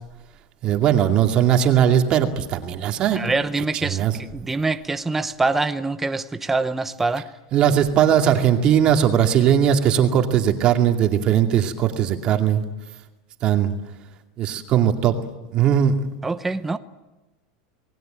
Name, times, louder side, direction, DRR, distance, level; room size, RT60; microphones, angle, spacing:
voice 1, 0.6-3.2 3.8-4.1 7.5-12.6 13.4-13.7 14.4-15.2 15.5-15.9, right 9 dB, 30° right, 2.4 m, -19 dB
voice 2, 3.1-7.3 16.2-16.8, right 3 dB, 10° right, 0.9 m, -24 dB
27.5 x 19.5 x 9.2 m
supercardioid pair, 165°, 3 cm